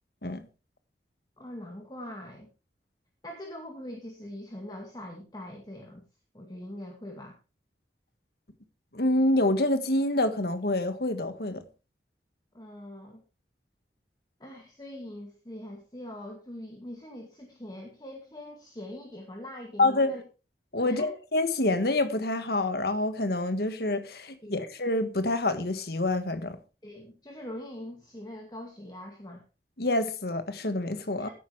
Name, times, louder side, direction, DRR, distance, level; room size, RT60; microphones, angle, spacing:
voice 1, 1.4-2.5 3.2-6.0 6.3-7.4 12.5-13.2 14.4-20.2 20.8-21.1 24.4-24.6 26.8-29.4 31.2-31.3, left 1 dB, 25° left, 2.2 m, -42 dB
voice 2, 8.9-11.6 19.8-20.1 20.7-26.6 29.8-31.3, left 2 dB, 60° left, 1.7 m, -27 dB
16.5 x 9.5 x 3.4 m
head